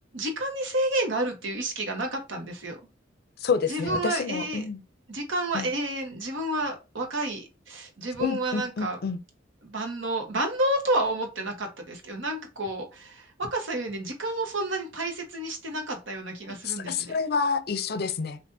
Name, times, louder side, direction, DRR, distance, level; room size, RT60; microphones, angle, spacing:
voice 1, 0.1-2.8 3.7-4.6 5.1-9.0 9.6-17.2, right 1 dB, 75° right, 1.2 m, -30 dB
voice 2, 3.4-4.8 5.5-5.7 8.2-9.2 16.5-18.4, left 5 dB, 55° left, 0.5 m, -28 dB
6.0 x 2.5 x 2.7 m
head